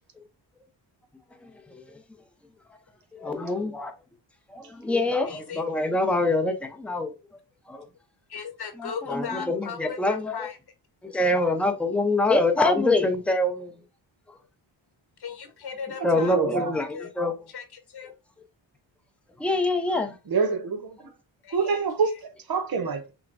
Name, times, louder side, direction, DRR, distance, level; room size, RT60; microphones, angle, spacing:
voice 1, 1.3-2.0 2.7-2.8 3.1-3.9 4.5-7.4 7.7-7.9 8.8-10.5 11.0-13.8 14.3-14.4 16.0-17.4 19.4-20.2, left 2 dB, 5° left, 0.6 m, -25 dB
voice 2, 5.3-5.6 8.3-10.6 15.2-16.4 16.7-17.1 17.5-18.1 21.4-21.8, left 6 dB, 55° left, 1.1 m, -37 dB
voice 3, 16.2-16.7 20.3-21.1 21.5-23.1, right 5 dB, 50° right, 0.8 m, -26 dB
5.7 x 2.2 x 2.6 m
cardioid pair, 75°, 46 cm